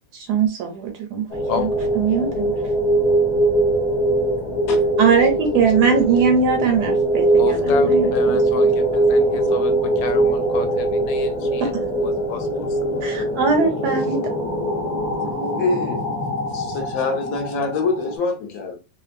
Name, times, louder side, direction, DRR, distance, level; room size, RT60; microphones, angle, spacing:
voice 1, 0.1-1.3 1.6-1.7 2.0-2.5 5.0-8.3 11.6-11.8 13.0-14.3, right 6 dB, 70° right, 1.2 m, -20 dB
sound 1, 1.3-18.2, right 1 dB, 30° left, 0.7 m, -21 dB
voice 2, 4.4-5.0 15.2-16.1 16.5-18.8, left 3 dB, 60° left, 1.0 m, -25 dB
voice 3, 7.4-12.8, left 7 dB, 80° left, 1.3 m, -31 dB
3.1 x 2.4 x 2.5 m
omnidirectional pair, 2.0 m